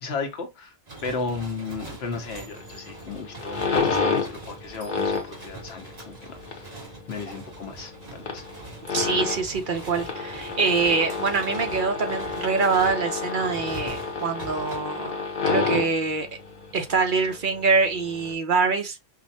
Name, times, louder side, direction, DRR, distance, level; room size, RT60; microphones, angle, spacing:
voice 1, 0.0-0.7 1.0-6.1 6.5-6.7 7.1-8.4, left 4 dB, 90° left, 1.1 m, -34 dB
sound 1, 0.9-14.8, right 3 dB, 40° right, 1.5 m, -43 dB
sound 2, 2.5-18.3, left 4 dB, 55° left, 0.9 m, -30 dB
voice 2, 8.9-15.1 15.5-16.3 16.7-19.0, right 4 dB, 55° right, 0.9 m, -24 dB
5.0 x 2.2 x 2.7 m
omnidirectional pair, 1.0 m